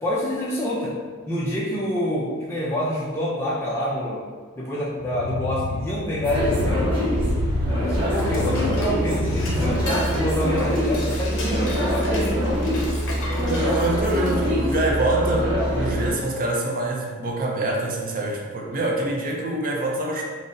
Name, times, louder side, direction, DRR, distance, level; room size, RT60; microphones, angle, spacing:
voice 1, 0.0-1.0 1.3-4.2 4.6-6.9 7.9-12.4, equal, 10° left, -7 dB, 0.4 m, -27 dB
sound 1, 5.0-10.3, left 3 dB, 90° left, 0.3 m, -31 dB
sound 2, 6.2-16.1, equal, 25° right, 0.9 m, -24 dB
Dishes pots and pans / Cutlery silverware, 7.8-14.7, left 1 dB, 60° left, 0.7 m, -36 dB
voice 2, 13.4-20.2, right 2 dB, 40° right, -1 dB, 0.5 m, -25 dB
3.7 x 2.1 x 3.9 m, 1.5 s
head